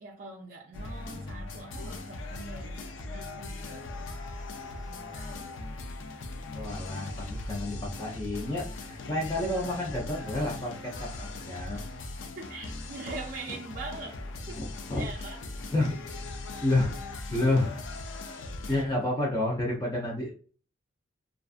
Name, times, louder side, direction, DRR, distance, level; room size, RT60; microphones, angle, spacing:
voice 1, 0.0-5.4 12.4-14.2 14.5-14.7 14.9-15.5 18.6-18.8, right 3 dB, 45° right, 0.4 m, -43 dB
sound 1, 0.7-18.8, left 2 dB, 75° left, 0.4 m, -39 dB
voice 2, 6.5-11.8 14.6-15.0 15.7-15.9 16.6-16.9 17.3-17.7 18.7-20.4, left 2 dB, 20° left, 0.5 m, -30 dB
2.4 x 2.4 x 2.3 m
head